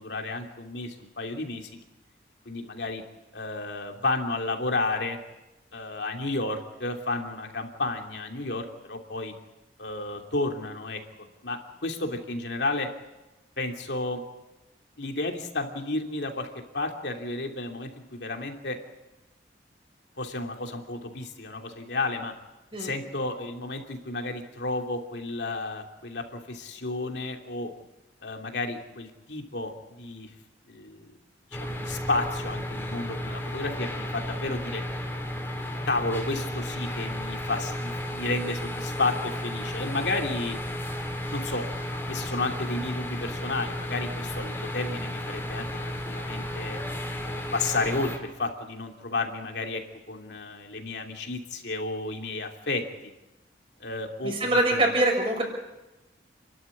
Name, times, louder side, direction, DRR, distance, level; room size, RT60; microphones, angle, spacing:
voice 1, 0.0-1.7 2.4-3.0 3.3-5.2 5.7-9.3 9.8-11.0 11.4-12.9 13.6-14.2 15.0-16.5 16.7-18.8 20.2-22.3 22.8-27.7 28.2-30.3 30.7-31.1 31.5-34.8 35.8-40.6 41.3-41.7 42.1-46.8 47.2-49.8 50.1-52.8 53.8-54.9, left 2 dB, 70° left, 3 dB, 2.9 m, -32 dB
sound 1, 31.5-48.2, left 1 dB, 10° left, 3.5 m, -33 dB
voice 2, 54.2-55.4, right 1 dB, 30° right, 1 dB, 6.4 m, -23 dB
29.0 x 12.5 x 9.9 m, 1.0 s
head